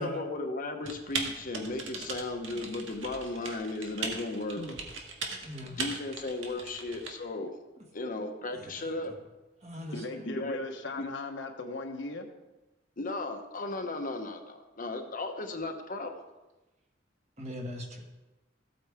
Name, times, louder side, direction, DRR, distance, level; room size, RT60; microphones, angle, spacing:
voice 1, 0.0-4.6 5.6-7.6 7.9-9.1 10.2-10.6 11.0-11.1 13.0-16.2, left 2 dB, 45° left, 5 dB, 1.0 m, -35 dB
Typing, 0.8-7.1, right 4 dB, 85° right, 1.6 m, -38 dB
voice 2, 5.4-5.8 8.5-8.7 9.6-10.0 17.4-18.0, left 1 dB, 35° right, 1 dB, 1.7 m, -39 dB
voice 3, 9.9-12.3, left 2 dB, 70° left, 4 dB, 1.2 m, -38 dB
14.5 x 8.7 x 3.6 m, 1.1 s
head